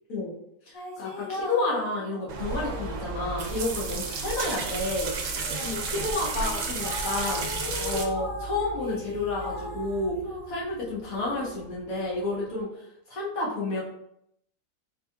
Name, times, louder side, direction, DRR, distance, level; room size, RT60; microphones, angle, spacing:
voice 1, 0.6-5.1 5.6-7.4 7.8-10.2 10.5-13.8, left 2 dB, 65° left, -4 dB, 1.6 m, -30 dB
sound 1, 0.7-4.8 5.2-11.7, left 2 dB, 50° left, 1.9 m, -39 dB
sound 2, 2.3-8.1, right 4 dB, 65° right, 0.9 m, -32 dB
sound 3, 2.4-12.6, right 3 dB, 85° left, 0.5 m, -43 dB
4.4 x 3.6 x 2.4 m, 0.77 s
omnidirectional pair, 1.6 m